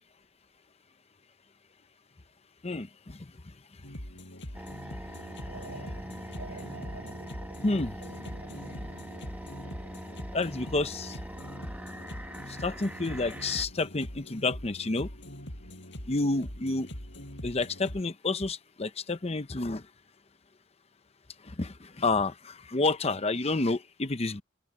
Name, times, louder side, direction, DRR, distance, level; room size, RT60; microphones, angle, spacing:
voice 1, 2.6-3.8 4.9-6.6 7.6-8.0 10.3-11.2 12.5-15.1 16.0-16.9 17.4-19.9 21.4-24.4, left 3 dB, 30° left, 0.8 m, -30 dB
sound 1, 3.8-18.0, equal, 60° left, 7.8 m, -43 dB
sound 2, 4.5-13.7, right 1 dB, 10° right, 1.4 m, -43 dB
sound 3, 5.1-10.0, right 2 dB, 80° right, 4.2 m, -48 dB
head